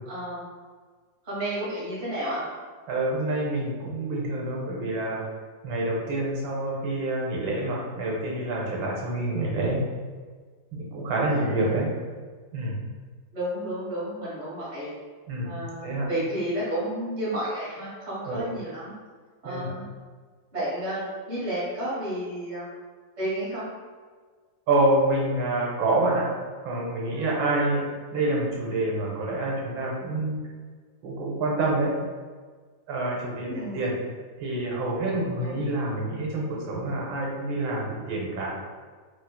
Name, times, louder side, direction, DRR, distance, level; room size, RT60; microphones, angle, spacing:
voice 1, 0.1-0.5 1.2-2.4 11.3-11.7 13.3-14.9 15.4-18.9 19.4-19.8 20.5-22.7 23.2-23.7 27.1-27.2 33.5-33.8 35.4-35.6, right 1 dB, 30° right, -10 dB, 1.1 m, -31 dB
voice 2, 2.9-5.2 5.6-9.8 10.7-11.9 12.5-12.8 15.3-15.5 15.8-16.0 18.3-18.5 19.4-19.7 24.7-26.3 26.6-27.8 28.1-30.4 31.0-31.9 32.9-34.0 34.4-38.5, right 2 dB, 90° right, -3 dB, 1.5 m, -27 dB
3.9 x 2.4 x 2.2 m, 1.5 s
omnidirectional pair, 2.0 m